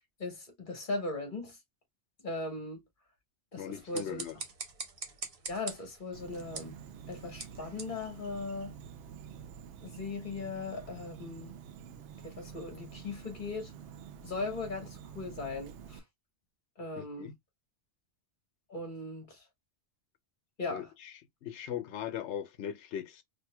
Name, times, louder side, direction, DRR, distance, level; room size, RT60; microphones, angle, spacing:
voice 1, 0.2-1.6 2.2-2.8 3.5-4.2 5.5-6.8 7.1-8.7 9.8-11.5 12.2-13.7 14.2-16.0 16.8-17.3 18.7-19.4 20.6-20.9, left 3 dB, 45° left, 1.5 m, -38 dB
voice 2, 3.6-4.4 17.0-17.4 20.7-21.1 21.4-23.2, left 9 dB, 90° left, 1.0 m, -39 dB
sound 1, 3.7-9.0, right 4 dB, 55° right, 1.1 m, -45 dB
Insect, 6.1-16.0, right 8 dB, 90° right, 0.9 m, -48 dB
4.3 x 2.6 x 2.2 m
omnidirectional pair, 1.1 m